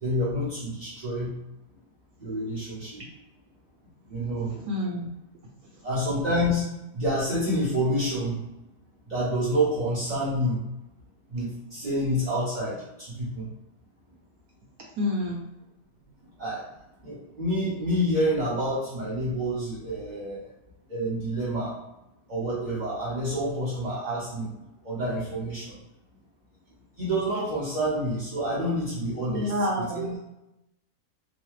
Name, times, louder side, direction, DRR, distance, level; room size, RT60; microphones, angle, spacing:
voice 1, 0.0-1.3 2.2-3.0 4.1-4.5 5.8-6.6 6.9-8.4 9.1-10.6 11.3-13.4 16.4-16.6 17.0-20.5 20.9-21.7 22.3-24.5 24.8-25.7 27.0-30.1, equal, 35° right, -9 dB, 0.7 m, -28 dB
voice 2, 4.5-5.1 15.0-15.4 29.3-30.2, left 1 dB, 65° right, -2 dB, 1.1 m, -28 dB
4.0 x 2.4 x 3.1 m, 0.91 s
omnidirectional pair, 1.8 m